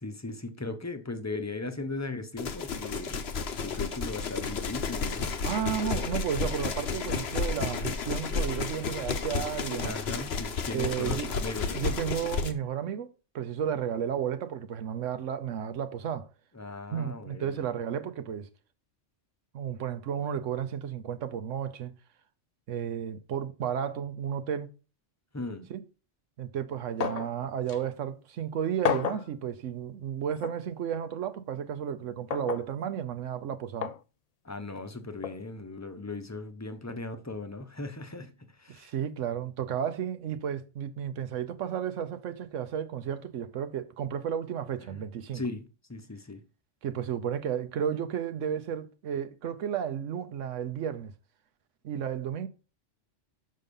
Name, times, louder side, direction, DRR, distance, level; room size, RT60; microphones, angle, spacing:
voice 1, 0.0-3.2 3.6-5.3 9.8-12.1 16.6-17.6 25.3-25.7 34.4-38.3 38.6-38.9 44.9-45.0 45.3-45.6 45.9-46.4, left 2 dB, 15° left, 0.7 m, -38 dB
sound 1, 2.4-12.5, left 5 dB, 60° left, 1.1 m, -32 dB
voice 2, 5.4-10.0 10.7-11.4 11.7-16.3 16.9-18.5 19.5-21.9 22.7-24.7 25.7-25.8 26.4-33.9 38.7-45.4 46.8-51.1 51.8-52.5, right 8 dB, 85° right, 1.1 m, -33 dB
sound 2, 27.0-27.3 27.7-27.8 28.8-29.3 30.4-30.6 32.3-32.7 33.8-34.0 35.2-35.4, left 8 dB, 80° left, 0.3 m, -31 dB
6.5 x 5.5 x 5.3 m
omnidirectional pair, 1.2 m